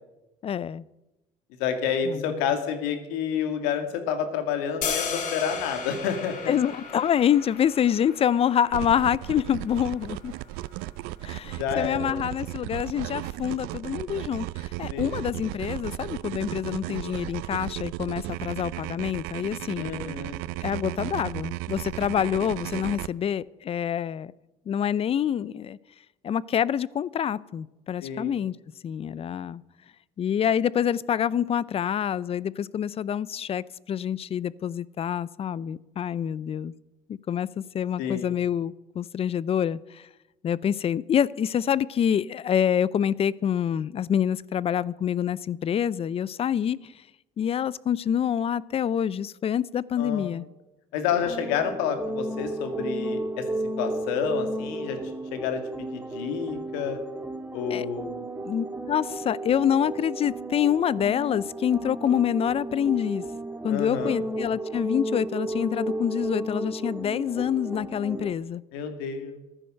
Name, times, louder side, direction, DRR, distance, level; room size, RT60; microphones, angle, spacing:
voice 1, 0.4-0.8 2.1-2.3 6.5-10.3 11.2-14.4 14.8-19.9 20.6-24.3 24.7-25.8 26.2-28.5 28.8-29.6 30.2-36.7 37.3-39.8 40.4-46.8 47.4-50.5 57.7-57.9 58.4-63.2 63.6-68.6, left 9 dB, 40° left, 21 dB, 0.5 m, -26 dB
voice 2, 1.6-6.5 11.4-12.3 14.9-15.1 19.8-20.4 28.0-28.3 38.0-38.3 50.0-50.3 50.9-53.4 53.8-55.0 55.3-57.0 57.5-58.2 63.7-64.2 68.7-69.4, left 7 dB, 80° left, 7 dB, 2.3 m, -29 dB
sound 1, 4.8-10.9, left 5 dB, 55° left, 2.9 m, -36 dB
sound 2, 8.7-23.1, right 18 dB, 80° right, 0.5 m, -35 dB
sound 3, 51.1-68.3, right 1 dB, 10° right, 1.7 m, -33 dB
14.5 x 10.0 x 6.5 m, 0.99 s
supercardioid pair, 85°, 16 cm